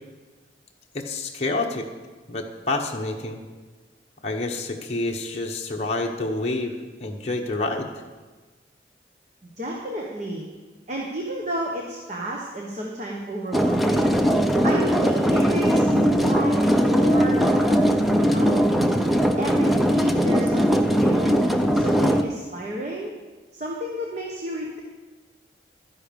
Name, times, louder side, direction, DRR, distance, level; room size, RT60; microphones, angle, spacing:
voice 1, 0.9-1.9 2.3-3.4 4.2-6.7 7.0-7.9, left 2 dB, 35° left, 0 dB, 1.0 m, -28 dB
voice 2, 9.6-10.5 10.9-14.1 14.6-18.6 19.4-21.4 21.7-23.1 23.5-24.8, right 1 dB, 40° right, -1 dB, 1.2 m, -32 dB
sound 1, 13.5-22.2, equal, ahead, 0.5 m, -20 dB
12.0 x 10.0 x 5.3 m, 1.3 s
head